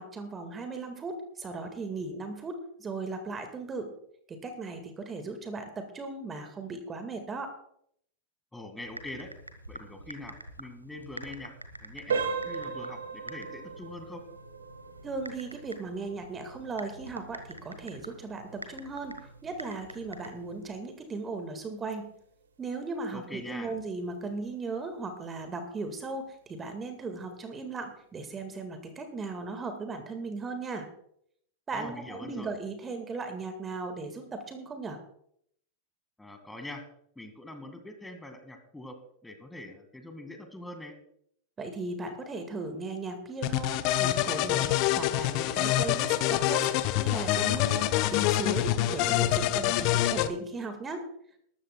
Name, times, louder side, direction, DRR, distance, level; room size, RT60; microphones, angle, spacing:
voice 1, 0.0-3.9 4.3-7.5 15.0-22.1 22.6-30.9 31.7-35.0 41.6-46.7 47.0-51.1, right 3 dB, 20° right, 7 dB, 1.8 m, -37 dB
voice 2, 8.5-9.3 9.7-11.5 11.8-14.3 23.1-23.7 31.7-32.5 36.2-36.9 37.2-41.0, left 1 dB, 5° left, 6 dB, 1.9 m, -43 dB
Typing, 8.8-20.7, right 1 dB, 85° right, 1.2 m, -47 dB
sound 1, 12.1-22.8 23.1-23.3 23.9-24.0 24.5-24.7, right 5 dB, 65° right, 1.7 m, -39 dB
sound 2, 43.4-50.3, left 14 dB, 45° left, 0.8 m, -26 dB
20.0 x 13.5 x 2.3 m, 0.70 s
figure-of-eight pair, 90°, 0 cm